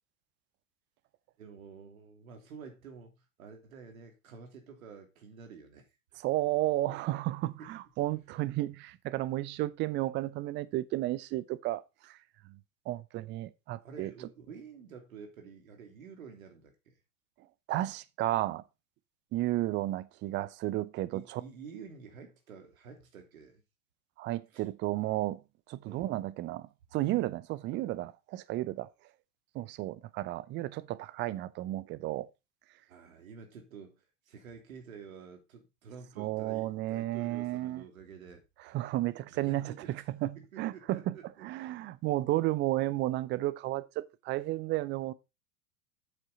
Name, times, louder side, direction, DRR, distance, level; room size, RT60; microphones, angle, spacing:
voice 1, 1.4-6.2 7.6-7.7 8.3-8.4 13.8-16.9 21.1-23.6 24.5-24.6 25.8-26.1 32.9-38.4 38.7-38.8 39.3-39.9 40.5-41.5, right 6 dB, 65° right, 2.9 m, -49 dB
voice 2, 6.2-12.2 12.5-12.6 12.9-14.1 17.7-18.6 19.3-21.4 24.2-25.4 25.7-28.9 29.5-32.3 36.2-37.8 38.7-41.2 41.4-45.1, right 16 dB, 25° right, 0.6 m, -33 dB
8.5 x 7.4 x 4.0 m
figure-of-eight pair, 90°, 44 cm